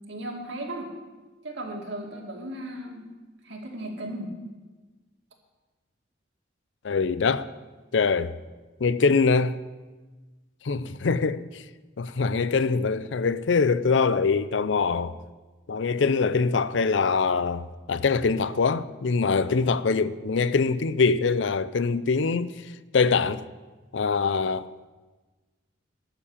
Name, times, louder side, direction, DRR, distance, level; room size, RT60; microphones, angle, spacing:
voice 1, 0.1-0.9 1.4-3.0 3.4-4.3, right 1 dB, 65° right, 2.4 m, -36 dB
voice 2, 6.8-7.5 7.9-8.4 8.8-9.6 10.6-11.6 12.0-15.2 15.7-22.5 22.9-23.4 23.9-24.9, left 4 dB, 70° left, 0.5 m, -23 dB
12.0 x 7.3 x 8.6 m
head